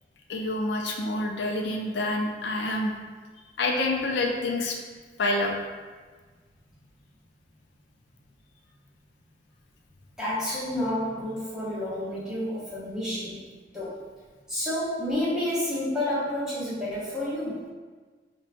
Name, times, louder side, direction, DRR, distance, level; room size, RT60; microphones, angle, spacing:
voice 1, 0.3-2.9 3.6-4.8 5.2-5.6, left 2 dB, 80° left, 1 dB, 0.4 m, -27 dB
voice 2, 10.2-13.4 13.7-14.0 14.5-17.7, left 1 dB, 5° right, -9 dB, 0.9 m, -30 dB
5.3 x 2.2 x 2.4 m, 1.4 s
head